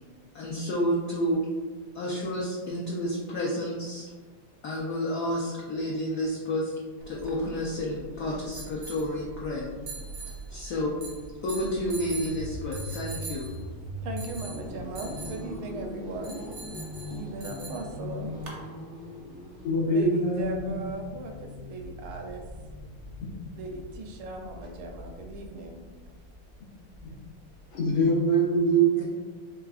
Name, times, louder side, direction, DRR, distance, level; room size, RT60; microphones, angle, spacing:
voice 1, 0.3-1.4 1.9-4.1 4.6-6.7 7.1-9.7 10.5-11.0 11.4-13.5 29.0-29.1, equal, 70° left, -4 dB, 0.9 m, -30 dB
sound 1, 7.0-18.6, right 3 dB, 55° right, 0.7 m, -43 dB
sound 2, 11.9-28.1, left 1 dB, 10° right, 0.4 m, -41 dB
voice 2, 14.0-16.4 17.1-18.3 19.8-22.4 23.5-25.8, right 2 dB, 75° right, 2 dB, 1.4 m, -38 dB
voice 3, 19.6-20.7 27.7-29.0, right 2 dB, 90° left, -4 dB, 2.0 m, -23 dB
4.7 x 3.3 x 2.4 m, 1.3 s
omnidirectional pair, 2.4 m